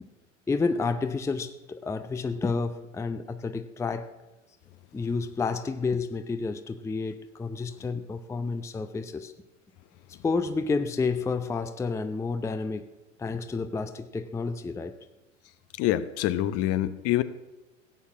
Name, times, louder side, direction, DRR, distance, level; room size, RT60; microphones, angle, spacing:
voice 1, 0.5-4.1 4.9-9.3 10.2-12.8 13.2-14.9, left 4 dB, 10° left, 10 dB, 0.6 m, -30 dB
voice 2, 15.8-17.2, left 13 dB, 40° left, 14 dB, 0.9 m, -25 dB
16.5 x 8.4 x 7.3 m, 1.1 s
figure-of-eight pair, 85°, 38 cm